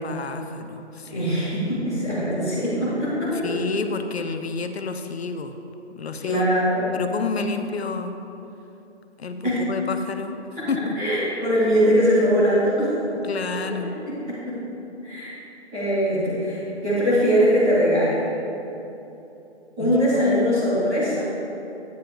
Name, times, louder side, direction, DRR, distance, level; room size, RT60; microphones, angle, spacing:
voice 1, 0.0-1.3 3.4-5.6 6.0-6.5 6.9-8.2 9.2-10.4 10.7-11.0 13.2-13.9 19.8-20.1, left 4 dB, 65° left, 7 dB, 0.7 m, -29 dB
voice 2, 1.1-3.3 6.2-6.8 9.4-9.6 11.0-12.9 14.0-14.6 15.0-15.3 15.7-18.2 19.8-21.2, equal, 5° right, -14 dB, 0.5 m, -21 dB
9.0 x 5.7 x 5.1 m, 3.0 s
figure-of-eight pair, 155°, 34 cm